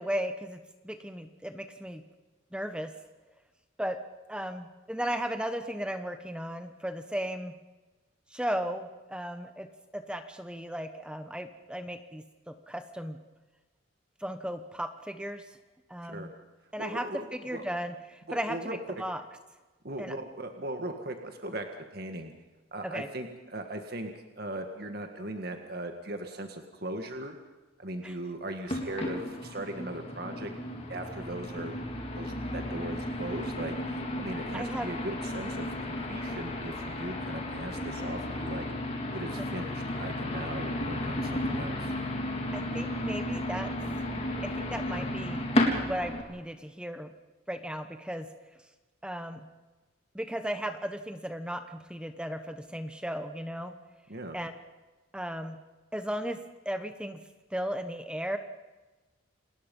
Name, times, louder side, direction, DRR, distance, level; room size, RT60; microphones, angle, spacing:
voice 1, 0.0-2.0 2.5-2.9 3.8-4.0 4.3-7.5 8.3-13.2 14.2-15.6 15.9-16.3 16.7-19.2 20.0-20.1 22.8-23.1 28.0-28.1 34.5-34.9 39.4-39.5 42.5-43.7 44.4-45.4 45.8-47.1 47.5-48.3 49.0-49.5 50.1-53.7 54.3-54.5 55.1-55.6 55.9-57.2 57.5-58.4, equal, 5° right, 8 dB, 1.0 m, -36 dB
voice 2, 16.8-17.6 18.3-18.8 19.8-22.3 22.7-27.3 27.8-30.5 30.9-31.7 32.1-38.6 39.1-41.9 54.1-54.4, right 1 dB, 50° right, 5 dB, 1.8 m, -39 dB
sound 1, 28.7-46.2, left 1 dB, 30° left, 3.7 m, -33 dB
29.5 x 20.0 x 5.5 m, 1.2 s
head